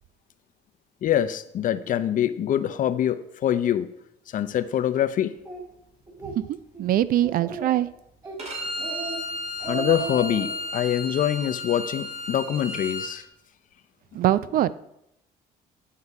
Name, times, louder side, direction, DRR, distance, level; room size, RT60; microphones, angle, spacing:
voice 1, 1.0-3.9 4.3-5.3 9.7-13.3, left 10 dB, 50° left, 13 dB, 0.6 m, -24 dB
Speech, 5.5-5.6 6.1-6.4 6.7-6.8 7.2-7.8 8.2-8.4 8.8-9.2 9.5-10.5, right 4 dB, 20° right, 2.7 m, -34 dB
voice 2, 6.2-7.9 14.1-14.8, right 12 dB, 60° right, 16 dB, 0.4 m, -23 dB
Bowed string instrument, 8.4-13.1, left 1 dB, 40° right, 3.1 m, -33 dB
9.9 x 5.6 x 4.8 m, 0.80 s
cardioid pair, 110°, 17 cm